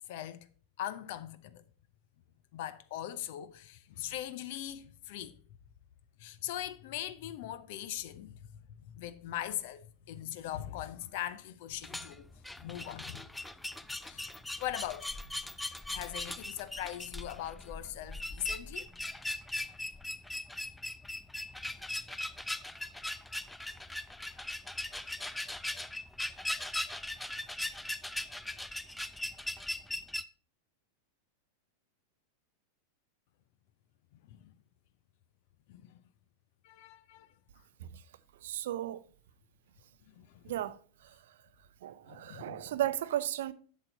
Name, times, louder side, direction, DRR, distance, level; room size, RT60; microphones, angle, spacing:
voice 1, 0.1-0.5 0.8-1.6 2.5-5.4 6.2-12.3 12.6-13.3 13.9-15.5 15.9-18.9 34.3-34.5 35.7-36.0 36.6-37.3 40.1-40.5 42.1-42.6, left 12 dB, 50° left, 0.7 m, -41 dB
sound 1, 11.7-30.2, left 1 dB, 5° left, 0.4 m, -40 dB
voice 2, 38.4-39.0 40.4-41.3 41.8-43.5, right 12 dB, 55° right, 0.5 m, -35 dB
7.8 x 7.3 x 4.0 m
figure-of-eight pair, 90°, 0 cm